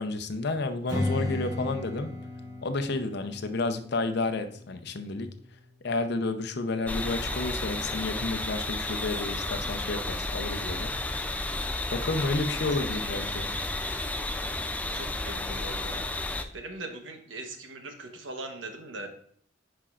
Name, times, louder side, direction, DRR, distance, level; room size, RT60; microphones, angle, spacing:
voice 1, 0.0-2.1 2.6-5.3 5.8-10.9 11.9-13.5, left 3 dB, 60° left, 8 dB, 0.7 m, -31 dB
Strum, 0.9-6.1, left 2 dB, 20° right, 2.6 m, -36 dB
sound 1, 6.9-16.4, left 2 dB, 10° left, 0.4 m, -32 dB
voice 2, 14.8-16.0 16.5-19.1, right 2 dB, 80° right, 5 dB, 1.1 m, -40 dB
10.0 x 5.2 x 2.5 m, 0.62 s
head